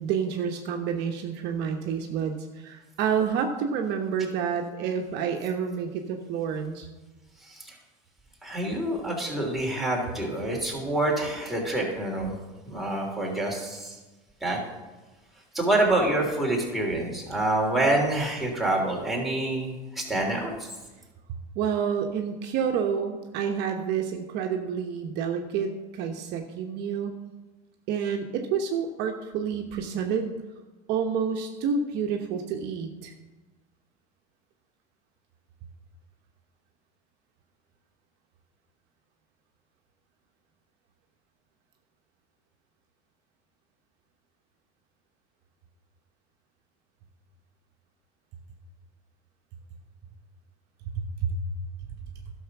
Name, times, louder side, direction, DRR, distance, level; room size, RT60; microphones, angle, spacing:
voice 1, 0.0-6.9 21.5-27.2 27.9-30.3 30.9-33.1 50.9-51.4, right 7 dB, 60° right, 3 dB, 1.1 m, -29 dB
voice 2, 7.4-7.8 8.4-12.4 12.6-14.0 14.4-14.6 15.5-20.7, right 1 dB, ahead, -3 dB, 3.4 m, -27 dB
11.5 x 6.5 x 6.0 m, 1.2 s
supercardioid pair, 100°, 20 cm